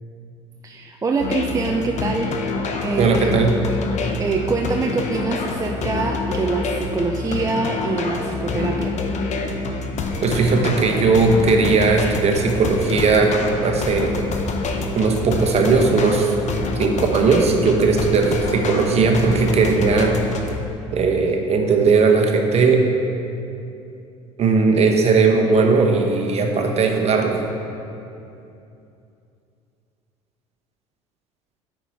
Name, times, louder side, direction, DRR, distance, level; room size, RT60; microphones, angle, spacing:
voice 1, 0.6-3.4 4.0-9.0, right 3 dB, 20° right, 2 dB, 0.5 m, -25 dB
sound 1, 1.2-20.5, left 3 dB, 45° left, 0.9 m, -26 dB
voice 2, 3.0-3.5 10.2-13.3 13.6-14.3 14.9-16.3 16.8-20.2 20.9-22.8 24.4-27.4, right 4 dB, 40° right, 3 dB, 1.0 m, -18 dB
9.7 x 4.4 x 4.7 m, 2.7 s
hypercardioid pair, 65°, 16 cm